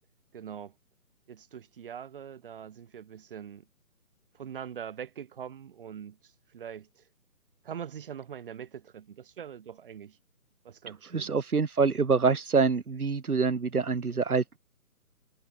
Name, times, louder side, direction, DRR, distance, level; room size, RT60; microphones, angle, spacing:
voice 1, 0.3-0.7 1.3-3.7 4.3-6.2 6.5-6.9 7.6-10.2 10.6-11.3, right 8 dB, 35° right, 3.8 m, -42 dB
voice 2, 11.0-14.6, right 5 dB, 75° right, 1.6 m, -26 dB
figure-of-eight pair, 150°, 44 cm